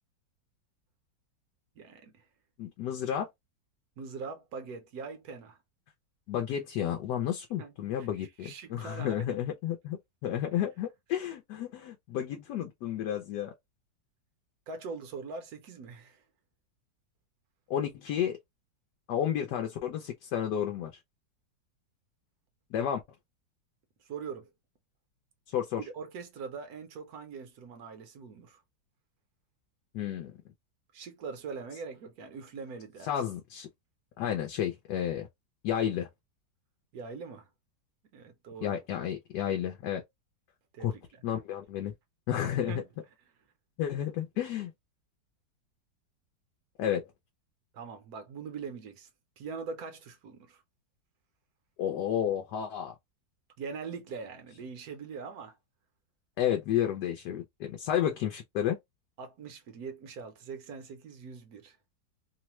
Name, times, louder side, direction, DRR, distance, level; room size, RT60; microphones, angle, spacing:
voice 1, 1.8-2.2 4.0-5.6 7.6-7.7 8.0-9.3 10.5-10.6 14.7-16.2 24.0-24.5 25.8-28.6 30.9-33.1 36.9-37.5 38.1-38.8 40.7-41.0 42.6-42.8 47.7-49.1 49.4-50.6 53.6-55.6 59.2-61.8, right 5 dB, 65° right, 1.1 m, -42 dB
voice 2, 2.6-3.3 6.3-13.5 17.7-18.4 19.1-21.0 22.7-23.0 25.5-25.8 29.9-30.4 33.0-33.7 34.2-35.3 35.6-36.1 38.6-40.0 40.8-40.9 41.2-41.9 42.3-42.8 43.8-44.7 46.8-47.1 51.8-52.9 56.4-58.8, left 10 dB, 75° left, 1.1 m, -31 dB
3.1 x 2.1 x 2.9 m
omnidirectional pair, 1.9 m